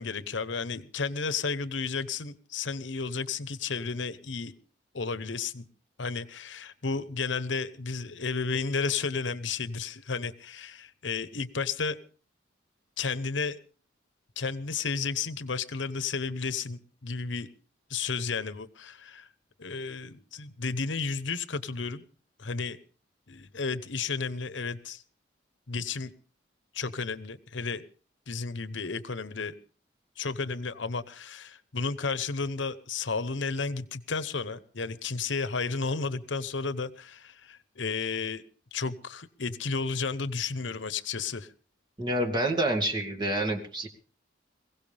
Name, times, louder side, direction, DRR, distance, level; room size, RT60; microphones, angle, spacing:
voice 1, 0.0-4.5 4.9-5.6 6.0-12.0 13.0-13.6 14.4-17.5 17.9-19.3 19.6-22.0 22.4-22.8 23.3-25.0 25.7-26.1 26.7-27.9 28.3-29.6 30.2-38.4 38.7-41.5, left 4 dB, 75° left, 14 dB, 1.0 m, -32 dB
voice 2, 42.0-43.9, right 1 dB, 25° right, 2 dB, 2.3 m, -28 dB
22.0 x 16.5 x 3.5 m, 0.41 s
head